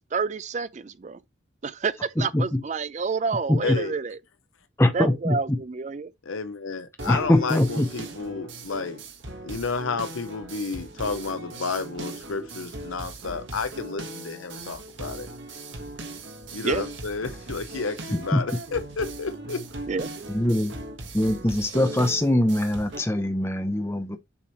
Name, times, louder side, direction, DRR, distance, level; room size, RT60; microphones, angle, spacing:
voice 1, 0.1-1.2 1.6-4.2 4.9-6.1 16.6-16.8 19.9-20.1, right 5 dB, 35° right, 0.4 m, -29 dB
voice 2, 2.2-2.6 3.5-3.8 4.8-5.6 7.1-7.9 18.1-18.4 20.3-20.8 21.1-24.2, left 1 dB, 15° left, 0.7 m, -23 dB
voice 3, 3.6-3.9 6.3-9.0 9.4-15.3 16.5-19.6, left 4 dB, 90° left, 0.7 m, -31 dB
sound 1, 7.0-23.0, right 2 dB, 70° right, 1.5 m, -38 dB
7.1 x 3.2 x 4.3 m
head